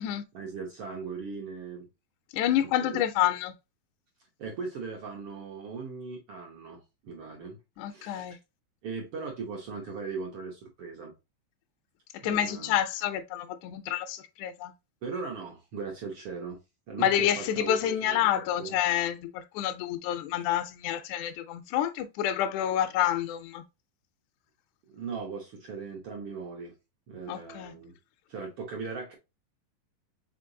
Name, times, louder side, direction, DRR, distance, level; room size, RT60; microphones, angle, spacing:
voice 1, 0.3-1.9 2.6-3.0 4.4-7.6 7.9-8.4 8.8-11.1 12.2-12.7 15.0-16.6 16.9-18.8 24.9-26.7 27.1-28.0 28.3-29.2, right 5 dB, 80° right, 1.2 m, -38 dB
voice 2, 2.3-3.5 7.8-8.4 12.2-14.7 17.0-23.6 27.3-27.8, left 11 dB, 80° left, 1.8 m, -28 dB
5.0 x 3.9 x 2.6 m
omnidirectional pair, 3.8 m